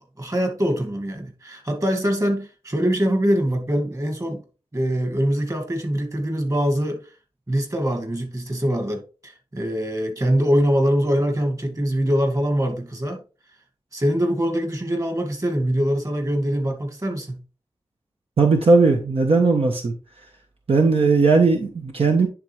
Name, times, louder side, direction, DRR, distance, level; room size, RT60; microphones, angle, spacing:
voice 1, 0.2-4.4 4.7-7.0 7.5-13.2 13.9-17.4, equal, 30° right, 2.2 m, -23 dB
voice 2, 18.4-19.9 20.7-22.3, right 4 dB, 70° right, 1.2 m, -17 dB
10.5 x 3.8 x 3.3 m
cardioid pair, 50°, 10 cm